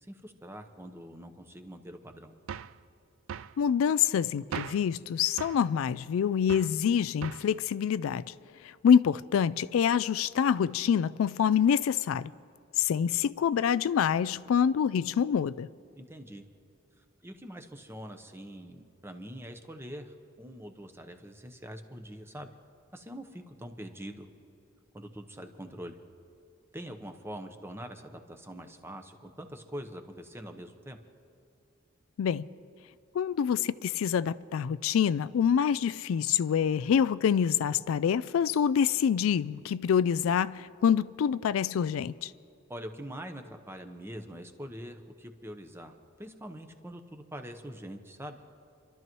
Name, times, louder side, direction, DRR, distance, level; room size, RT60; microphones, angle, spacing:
voice 1, 0.0-2.3 15.9-16.4 17.0-22.5 22.9-24.3 24.9-26.0 26.7-31.0 42.7-48.4, equal, 10° right, 0.9 m, -44 dB
sound 1, 2.5-2.8 3.3-3.6 4.5-4.9 5.4-5.7 6.5-6.8 7.2-7.5, right 8 dB, 75° right, 0.4 m, -39 dB
voice 2, 3.6-8.3 8.6-12.3 12.8-15.7 32.2-32.5 33.1-42.3, left 8 dB, 80° left, 0.3 m, -26 dB
29.5 x 12.5 x 3.1 m
head